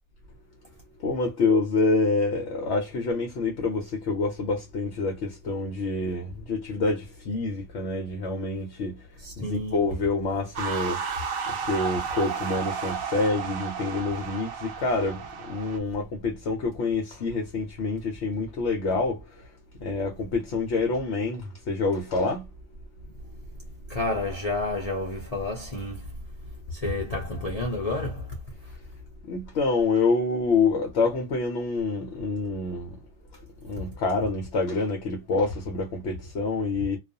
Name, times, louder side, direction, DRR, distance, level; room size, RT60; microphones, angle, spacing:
voice 1, 1.0-9.0 9.4-11.0 11.5-19.4 19.8-22.5 29.3-33.0 33.3-37.0, left 3 dB, 60° left, 0.7 m, -27 dB
voice 2, 9.2-9.9 23.9-26.3 26.7-28.4, left 2 dB, 80° left, 0.3 m, -30 dB
sound 1, 10.6-15.8, right 6 dB, 65° right, 0.9 m, -32 dB
2.4 x 2.3 x 2.6 m
omnidirectional pair, 1.7 m